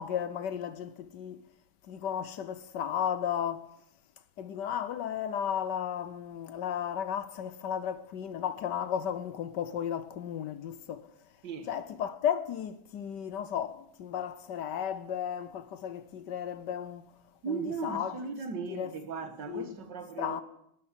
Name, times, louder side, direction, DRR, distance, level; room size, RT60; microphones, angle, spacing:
voice 1, 0.0-1.4 1.9-3.7 4.4-11.1 11.7-17.0 17.5-18.2 18.7-18.9 19.5-19.8 20.2-20.4, left 9 dB, 70° left, 1.3 m, -34 dB
voice 2, 17.4-20.4, right 4 dB, 65° right, 2.1 m, -37 dB
13.0 x 11.0 x 9.9 m
omnidirectional pair, 2.1 m